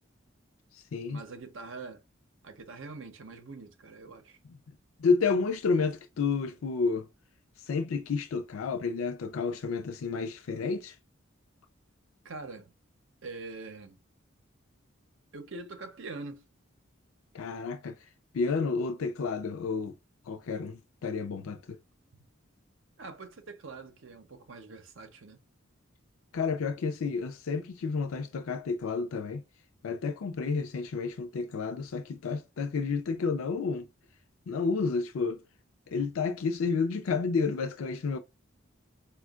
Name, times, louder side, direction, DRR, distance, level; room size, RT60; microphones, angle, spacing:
voice 1, 1.1-2.0 2.4-4.4 12.2-12.7 13.2-14.0 15.3-16.4 23.0-25.4, right 3 dB, 70° right, 0.7 m, -44 dB
voice 2, 5.0-7.1 7.6-11.0 17.3-18.0 18.3-19.9 20.3-21.8 26.3-29.4 29.8-33.8 34.5-35.4 35.9-38.2, left 4 dB, 85° left, 0.4 m, -30 dB
4.3 x 2.2 x 2.3 m
head